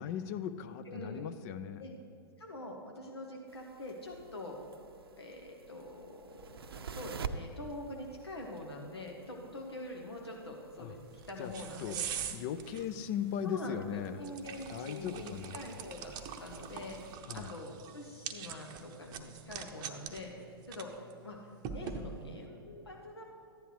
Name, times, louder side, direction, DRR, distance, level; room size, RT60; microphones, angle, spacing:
voice 1, 0.0-1.8 10.8-10.9 11.4-12.0 12.3-14.2 14.7-15.9 17.3-17.5, left 8 dB, 40° left, 11 dB, 0.5 m, -38 dB
voice 2, 0.9-1.2 1.8-1.9 2.4-4.6 5.2-6.3 6.8-11.0 11.3-12.1 13.4-16.1 16.4-20.9 21.2-21.4 21.7-23.3, left 1 dB, 80° left, 0 dB, 1.2 m, -44 dB
sound 1, 3.5-17.2, right 5 dB, 70° right, 0.6 m, -49 dB
sound 2, 11.0-22.5, right 7 dB, 30° right, 0.7 m, -45 dB
14.5 x 10.0 x 3.1 m, 2.7 s
figure-of-eight pair, 105°, 13 cm